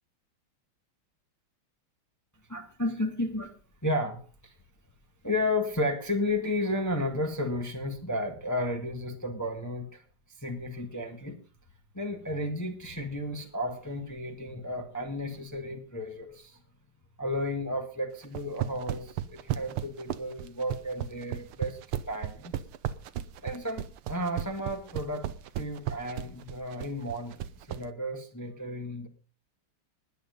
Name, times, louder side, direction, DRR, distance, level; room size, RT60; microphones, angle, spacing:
voice 1, 2.5-3.5 3.8-4.5 5.2-10.0 10.4-11.4 11.9-16.6 17.2-21.8 22.1-22.5 23.4-25.3 25.6-27.4 27.7-29.1, left 1 dB, 10° left, 4 dB, 1.7 m, -33 dB
sound 1, 18.2-27.8, right 11 dB, 90° right, 1.8 m, -34 dB
20.0 x 8.6 x 5.3 m, 0.39 s
omnidirectional pair, 2.3 m